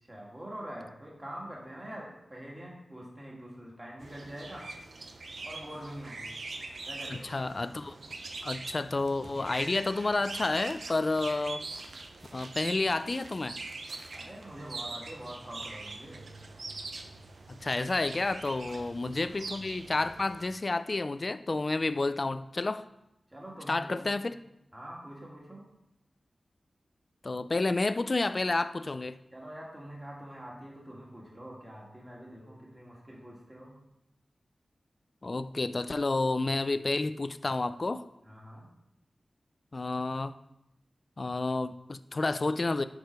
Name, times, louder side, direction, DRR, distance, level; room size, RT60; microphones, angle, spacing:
voice 1, 0.1-4.7 5.4-6.3 6.8-7.3 14.1-16.3 23.3-24.1 24.7-25.6 29.3-33.8 38.2-38.7, right 1 dB, 15° right, -4 dB, 2.7 m, -44 dB
sound 1, 4.0-20.4, right 3 dB, 70° right, 0.8 m, -43 dB
voice 2, 7.1-8.0 8.4-11.7 12.3-13.6 17.5-22.9 23.7-24.4 27.2-29.2 35.2-38.1 39.7-40.3 41.2-42.8, left 3 dB, 45° left, 13 dB, 0.4 m, -30 dB
10.5 x 4.9 x 4.7 m, 0.85 s
wide cardioid pair, 70°, 0 cm